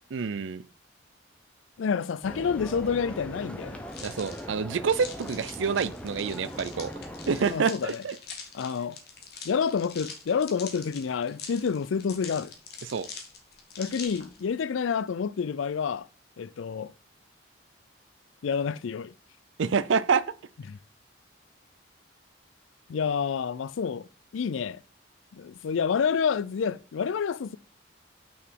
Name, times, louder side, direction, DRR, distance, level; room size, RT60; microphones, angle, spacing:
voice 1, 0.1-0.6 4.0-6.9 7.3-8.2 12.9-13.1 19.6-20.3, right 5 dB, 80° right, 0.5 m, -27 dB
voice 2, 1.8-3.8 7.5-8.0 8.5-9.0 9.4-12.5 13.8-16.1 16.4-16.9 18.4-19.1 20.7-20.8 22.9-24.1 24.3-24.8 25.3-27.6, left 6 dB, 85° left, 0.4 m, -28 dB
sound 1, 2.2-7.5, equal, 5° left, 0.9 m, -40 dB
sound 2, 3.9-14.4, left 5 dB, 55° left, 1.7 m, -44 dB
6.1 x 6.0 x 4.6 m
head